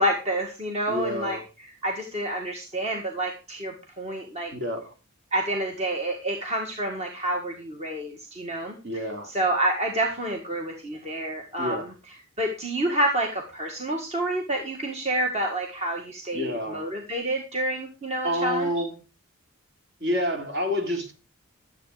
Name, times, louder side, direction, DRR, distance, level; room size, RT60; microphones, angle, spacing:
voice 1, 0.0-4.5 5.3-11.9 12.4-18.7, right 1 dB, 30° right, 1.8 m, -28 dB
voice 2, 0.9-1.4 4.5-4.9 8.8-9.3 11.6-11.9 16.3-16.9 18.2-18.9 20.0-21.1, equal, 50° right, 3.2 m, -28 dB
12.5 x 8.1 x 5.0 m
head